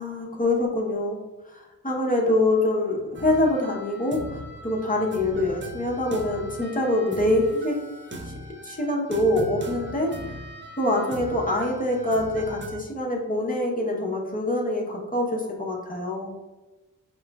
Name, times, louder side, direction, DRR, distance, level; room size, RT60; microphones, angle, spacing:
voice 1, 0.0-7.8 8.2-8.3 8.6-10.4 10.8-16.3, left 1 dB, 25° left, -2 dB, 0.7 m, -25 dB
sound 1, 3.1-12.7, right 1 dB, 35° right, 0.5 m, -40 dB
5.5 x 3.0 x 2.3 m, 1.1 s
wide cardioid pair, 95°, 34 cm